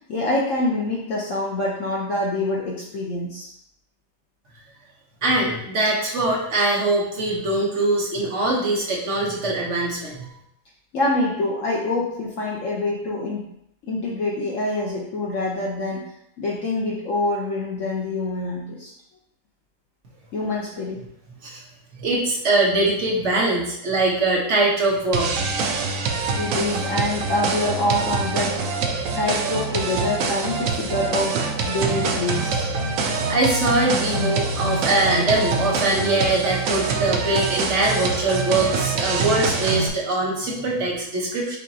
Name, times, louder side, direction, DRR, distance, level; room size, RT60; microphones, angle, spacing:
voice 1, 0.1-3.5 10.9-13.5 13.8-16.0 16.4-18.9 20.3-21.0 26.3-28.6 29.2-32.7, left 2 dB, 65° left, -2 dB, 0.8 m, -25 dB
voice 2, 5.2-10.3 21.4-21.6 22.0-25.3 32.8-41.6, right 2 dB, 50° right, -3 dB, 1.0 m, -22 dB
sound 1, 25.1-39.9, right 4 dB, 85° right, 0.7 m, -25 dB
5.7 x 2.9 x 2.7 m, 0.74 s
omnidirectional pair, 2.0 m